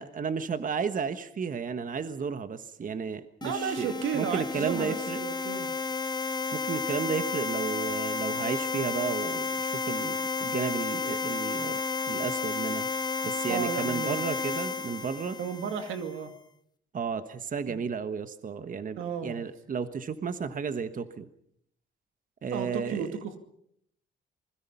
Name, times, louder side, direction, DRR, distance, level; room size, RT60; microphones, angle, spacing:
voice 1, 0.0-5.2 6.5-11.8 12.1-12.9 13.2-15.4 16.9-21.3 22.4-23.1, right 6 dB, 45° right, 11 dB, 1.4 m, -33 dB
sound 1, 3.4-16.1, left 4 dB, 20° left, 0.8 m, -32 dB
voice 2, 3.4-5.7 13.5-14.2 15.4-16.3 17.7-17.8 19.0-19.4 22.5-23.4, right 7 dB, 90° right, 7 dB, 2.4 m, -33 dB
27.0 x 21.0 x 5.7 m, 0.70 s
cardioid pair, 90°, 20 cm